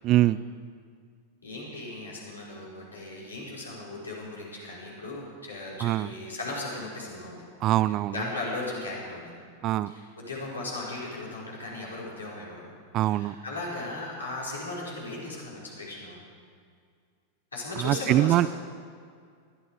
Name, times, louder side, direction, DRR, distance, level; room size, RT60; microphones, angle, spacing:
voice 1, 0.0-0.4 5.8-6.1 7.6-8.1 9.6-9.9 12.9-13.3 17.8-18.5, right 14 dB, 35° right, 17 dB, 0.4 m, -23 dB
voice 2, 1.4-7.4 7.8-9.3 9.9-12.6 13.0-16.2 17.5-18.5, left 2 dB, 75° left, -5 dB, 5.2 m, -37 dB
20.0 x 13.5 x 5.0 m, 2.2 s
figure-of-eight pair, 90°, 0 cm